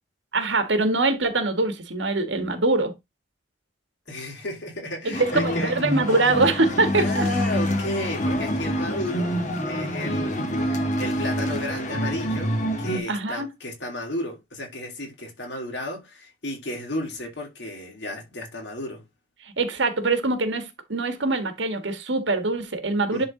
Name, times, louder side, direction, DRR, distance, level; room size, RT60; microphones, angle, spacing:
voice 1, 0.3-2.9 5.0-7.3 13.1-13.5 19.4-23.2, right 3 dB, 75° right, 1.5 m, -23 dB
voice 2, 4.1-5.8 6.9-9.3 9.6-19.0 23.1-23.3, left 1 dB, 65° left, 3.3 m, -33 dB
sound 1, 5.1-13.0, equal, 40° left, 1.4 m, -26 dB
10.5 x 3.9 x 3.7 m
head